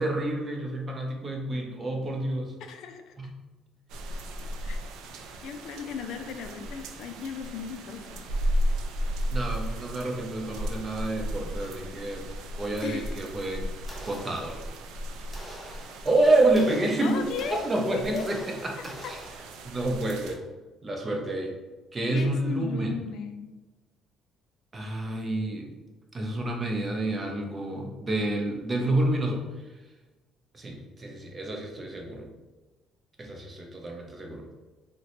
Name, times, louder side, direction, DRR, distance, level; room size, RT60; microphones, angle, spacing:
voice 1, 0.0-2.5 3.2-3.3 9.3-12.3 12.6-13.6 14.0-14.6 15.2-15.3 16.0-17.2 17.5-18.8 19.1-19.2 19.6-20.4 20.8-21.5 21.9-22.9 24.7-25.7 26.1-29.4 30.5-32.3 33.2-34.5, right 2 dB, 30° right, 1 dB, 0.7 m, -28 dB
voice 2, 2.6-3.1 4.6-4.8 5.4-8.3 12.8-13.2 17.0-19.1 22.1-23.5, left 6 dB, 75° left, 6 dB, 0.3 m, -36 dB
sound 1, 3.9-20.4, equal, 80° right, 0.3 m, -35 dB
sound 2, 13.9-14.9 15.3-19.8, equal, 10° left, 0.7 m, -46 dB
3.7 x 2.1 x 3.0 m, 1.2 s
cardioid pair, 85°, 0 cm